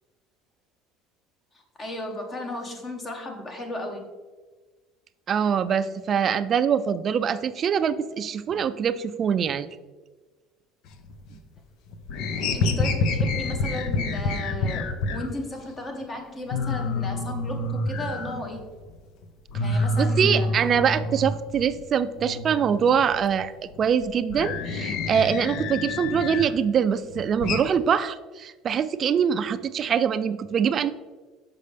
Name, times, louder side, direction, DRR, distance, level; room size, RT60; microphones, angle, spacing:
voice 1, 1.5-4.1 12.5-18.6 19.6-20.5, left 1 dB, 25° left, 3 dB, 1.1 m, -35 dB
voice 2, 5.3-9.7 20.0-23.5 23.8-30.9, right 7 dB, 40° right, 13 dB, 0.3 m, -24 dB
sound 1, 10.9-11.6 11.9-15.3 15.8-15.9 16.2-16.3 16.5-19.0 19.2-21.8 22.2-26.6 27.0-27.6, left 2 dB, 65° left, 0.6 m, -28 dB
6.6 x 5.2 x 3.3 m, 1.3 s
cardioid pair, 125°, 0 cm